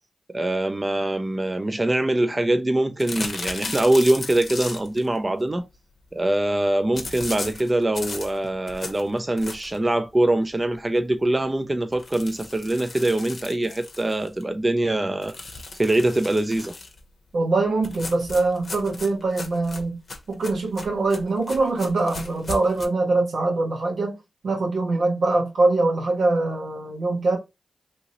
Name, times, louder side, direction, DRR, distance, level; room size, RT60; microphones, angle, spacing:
voice 1, 0.3-5.7 6.1-15.3 15.8-16.7, right 1 dB, 30° right, 0.4 m, -23 dB
sound 1, 3.0-5.1 6.9-9.9 10.3-10.4 10.7-10.8 11.1-11.2 11.9-14.4 15.2-17.0 17.8-22.9, left 3 dB, 60° left, 0.7 m, -36 dB
voice 2, 17.3-20.0 20.3-24.1 24.4-27.4, right 3 dB, 80° right, 1.0 m, -23 dB
2.8 x 2.6 x 2.9 m
cardioid pair, 50°, 0 cm